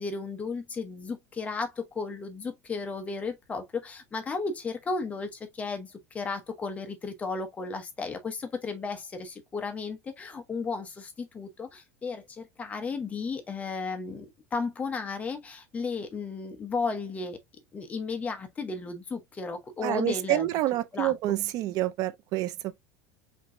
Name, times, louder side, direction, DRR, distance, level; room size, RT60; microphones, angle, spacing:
voice 1, 0.0-17.4 17.7-20.5 20.9-21.1, left 4 dB, 15° left, 1.1 m, -34 dB
voice 2, 19.8-22.8, right 15 dB, 45° right, 0.6 m, -28 dB
5.3 x 3.0 x 2.7 m
supercardioid pair, 155°, 9 cm